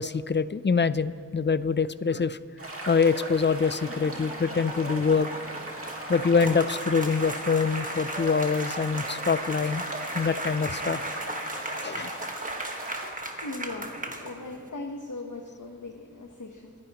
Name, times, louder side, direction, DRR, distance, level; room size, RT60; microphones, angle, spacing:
voice 1, 0.0-2.4 2.9-5.3 6.1-9.8 10.1-11.0 11.8-12.2, left 5 dB, 35° left, 15 dB, 0.4 m, -25 dB
sound 1, 2.6-13.1, right 1 dB, 45° right, 1.9 m, -38 dB
sound 2, 3.7-14.7, right 1 dB, 25° right, 1.4 m, -36 dB
voice 2, 13.4-16.8, left 2 dB, 70° left, 2 dB, 1.0 m, -39 dB
28.5 x 10.5 x 2.9 m, 2.2 s
wide cardioid pair, 45°, 32 cm